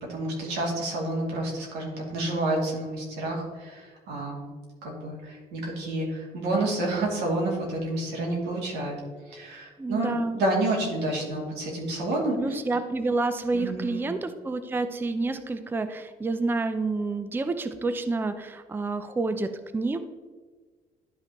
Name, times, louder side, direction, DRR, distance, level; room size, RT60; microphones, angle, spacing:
voice 1, 0.1-4.5 4.8-8.9 9.3-12.6 13.5-14.0, right 2 dB, 90° right, -2 dB, 2.7 m, -29 dB
voice 2, 9.8-10.4 12.4-20.0, right 3 dB, 10° right, 10 dB, 0.5 m, -29 dB
11.5 x 5.6 x 3.0 m, 1.4 s
cardioid pair, 110°, 17 cm